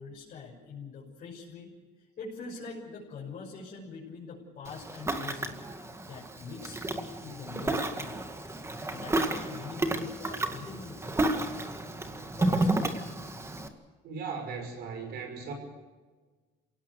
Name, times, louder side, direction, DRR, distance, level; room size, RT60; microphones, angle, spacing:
voice 1, 0.0-1.7 2.2-5.6 6.1-8.3 8.9-11.1 12.4-12.8, left 4 dB, 50° left, -5 dB, 6.3 m, -43 dB
Ocean, 4.6-13.7, right 2 dB, 15° right, 2.0 m, -32 dB
voice 2, 14.0-15.5, right 5 dB, 75° right, 4 dB, 6.0 m, -37 dB
27.5 x 18.0 x 6.6 m, 1.4 s
cardioid pair, 110°, 17 cm